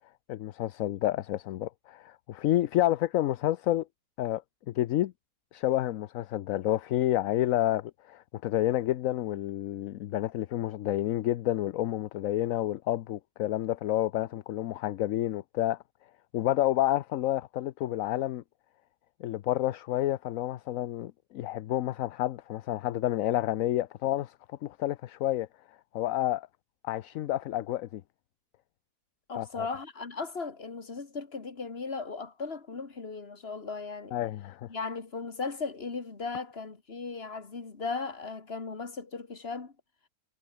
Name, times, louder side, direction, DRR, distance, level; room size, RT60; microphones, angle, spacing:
voice 1, 0.3-3.9 4.2-4.4 4.7-5.1 5.5-15.8 16.3-18.4 19.2-24.3 24.6-25.5 25.9-26.5 26.8-28.0 29.3-29.7 34.1-34.7, left 13 dB, 65° left, 0.9 m, -29 dB
voice 2, 29.3-34.2 34.7-39.7, left 4 dB, 35° left, 2.3 m, -37 dB
omnidirectional pair, 1.7 m